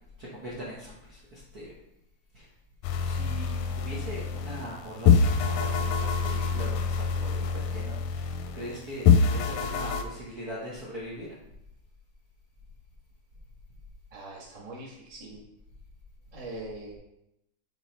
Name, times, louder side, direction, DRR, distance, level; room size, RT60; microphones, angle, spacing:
voice 1, 0.2-1.7 2.3-2.5 3.0-11.4, equal, 85° right, -6 dB, 0.8 m, -41 dB
sound 1, 2.8-4.7 5.1-8.7 9.1-10.0, left 6 dB, 85° left, 2.1 m, -25 dB
voice 2, 14.1-15.4 16.3-17.0, right 2 dB, 35° right, -5 dB, 0.5 m, -42 dB
6.3 x 4.4 x 4.1 m, 0.81 s
omnidirectional pair, 3.6 m